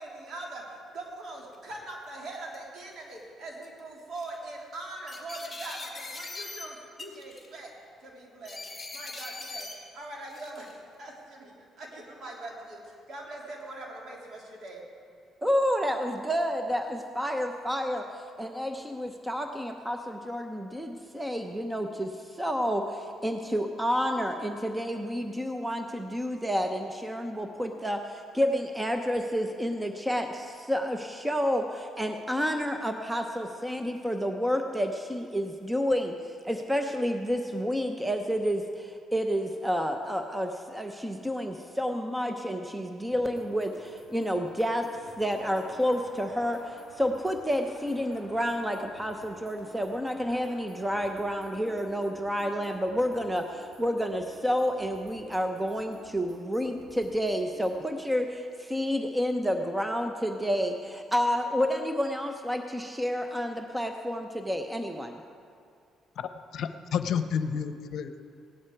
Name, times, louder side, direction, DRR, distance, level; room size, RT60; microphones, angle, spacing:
voice 1, 0.0-7.7 8.0-8.6 8.9-14.8, right 2 dB, 55° right, -2 dB, 3.3 m, -42 dB
sound 1, 1.5-1.6 2.3-2.8 3.6-3.8 4.1-4.4 5.1-6.7 7.0-7.6 8.4-9.7 10.3-10.8, left 3 dB, 15° left, 2.1 m, -41 dB
voice 2, 15.4-44.9 45.2-65.2, equal, 10° right, 5 dB, 0.8 m, -30 dB
sound 2, 43.1-57.9, right 1 dB, 90° right, 3.4 m, -53 dB
sound 3, 45.4-50.6, right 1 dB, 40° right, 3.3 m, -53 dB
voice 3, 66.2-68.2, left 7 dB, 65° left, 10 dB, 0.7 m, -31 dB
17.0 x 11.0 x 4.7 m, 2.3 s
cardioid pair, 85°, 0 cm